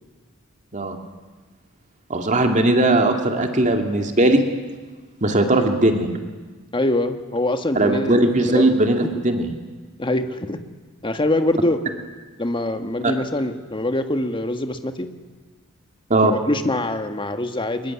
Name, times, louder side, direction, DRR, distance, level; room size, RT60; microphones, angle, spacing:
voice 1, 2.1-4.4 5.2-6.1 7.8-9.5 13.0-13.1 16.1-16.3, right 2 dB, 35° right, 4 dB, 2.3 m, -18 dB
voice 2, 6.7-8.7 10.0-10.6 11.0-11.8 12.4-15.1 16.2-17.9, left 1 dB, 25° left, 7 dB, 1.6 m, -24 dB
24.0 x 21.5 x 9.9 m, 1.3 s
head